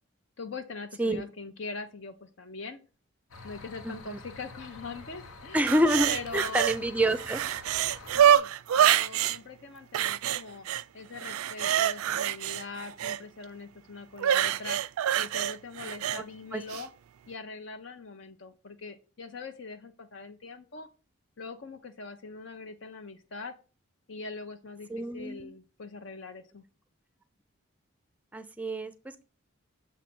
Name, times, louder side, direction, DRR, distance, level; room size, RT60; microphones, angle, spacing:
voice 1, 0.4-2.8 3.4-5.7 6.1-6.8 8.1-8.5 8.8-10.7 10.9-14.8 15.2-16.9 17.3-20.9 21.4-23.5 24.1-26.6, left 4 dB, 60° left, 7 dB, 0.6 m, -42 dB
sound 1, 3.3-8.4, left 3 dB, 90° left, 1.2 m, -47 dB
voice 2, 3.8-4.2 5.5-7.4 16.5-16.6 24.9-25.6 28.3-29.2, equal, 5° right, 12 dB, 0.4 m, -28 dB
sound 2, 5.7-6.8 7.1-9.4 9.9-10.8 11.2-13.2 14.2-16.2 16.7-16.8, right 10 dB, 85° right, 0.3 m, -26 dB
7.3 x 3.1 x 5.9 m, 0.34 s
head